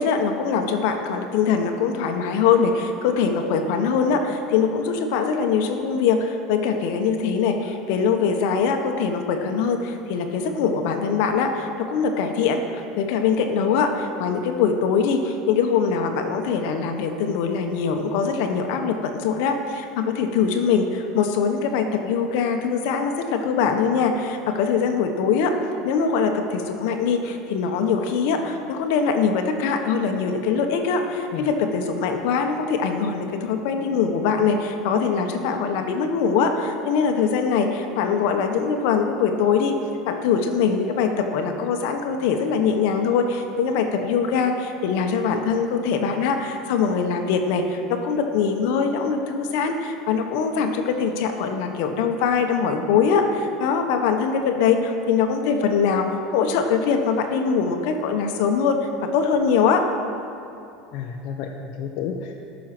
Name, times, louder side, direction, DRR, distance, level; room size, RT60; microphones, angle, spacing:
voice 1, 0.0-25.5 25.8-39.8 40.1-59.8, left 6 dB, 70° left, 5 dB, 1.1 m, -22 dB
voice 2, 60.9-62.4, left 6 dB, 55° left, 1 dB, 0.8 m, -31 dB
14.0 x 6.3 x 6.0 m, 2.7 s
supercardioid pair, 140°, 0 cm